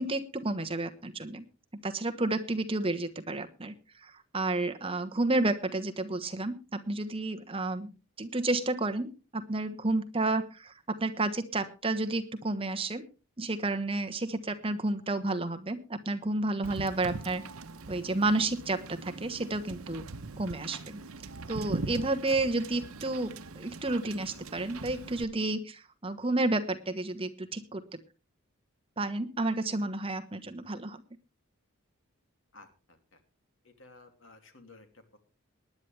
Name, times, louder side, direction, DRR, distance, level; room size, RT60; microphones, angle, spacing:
voice 1, 0.0-1.4 1.8-3.7 4.0-7.9 8.2-13.0 13.4-17.4 17.9-20.0 20.3-21.0 21.5-28.0 29.0-31.0, right 2 dB, 25° right, 7 dB, 1.2 m, -31 dB
Wind / Boat Water vehicle, 16.6-25.2, right 3 dB, 85° right, 0.9 m, -41 dB
voice 2, 32.5-33.2 33.6-35.2, left 3 dB, 60° left, 6 dB, 2.7 m, -55 dB
19.0 x 10.5 x 3.4 m, 0.31 s
head